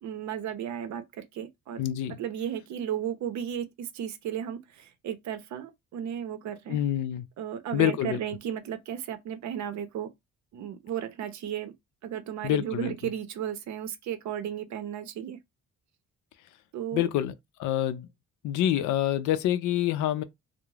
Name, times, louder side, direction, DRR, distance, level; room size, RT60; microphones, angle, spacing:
voice 1, 0.0-6.8 7.4-10.1 10.5-11.7 12.0-15.4 16.7-17.1, right 9 dB, 70° right, 0.6 m, -34 dB
voice 2, 1.8-2.2 6.7-7.3 7.7-8.2 12.4-12.9 16.9-17.3 17.6-18.1 18.4-20.2, left 12 dB, 80° left, 0.5 m, -26 dB
2.3 x 2.0 x 3.1 m
cardioid pair, 90°, 30 cm